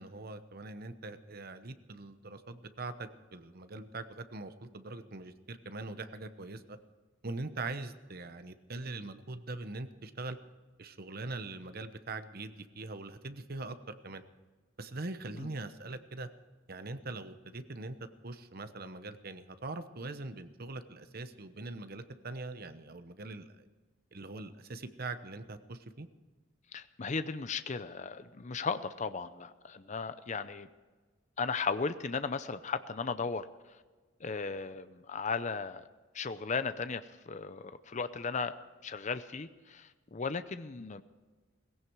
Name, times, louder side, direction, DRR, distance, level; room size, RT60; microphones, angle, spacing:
voice 1, 0.0-6.8 7.2-10.4 10.8-14.2 14.8-16.3 16.7-18.0 18.2-23.7 24.1-26.1, right 2 dB, 50° right, 10 dB, 1.0 m, -42 dB
voice 2, 26.7-30.7 31.4-33.5 34.2-35.9 36.1-38.5 38.8-41.0, left 4 dB, 40° left, 12 dB, 0.6 m, -36 dB
18.0 x 16.5 x 4.7 m, 1.3 s
head